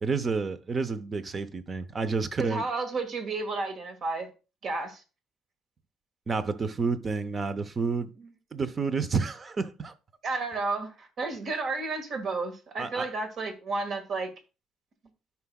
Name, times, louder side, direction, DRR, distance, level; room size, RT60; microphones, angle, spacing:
voice 1, 0.0-2.6 6.3-8.1 8.5-9.9 12.8-13.1, right 4 dB, 30° right, 0.7 m, -29 dB
voice 2, 2.4-4.3 4.6-5.0 8.2-8.3 10.2-14.3, right 3 dB, 50° right, 1.8 m, -32 dB
13.5 x 5.8 x 2.3 m
cardioid pair, 135°, 0 cm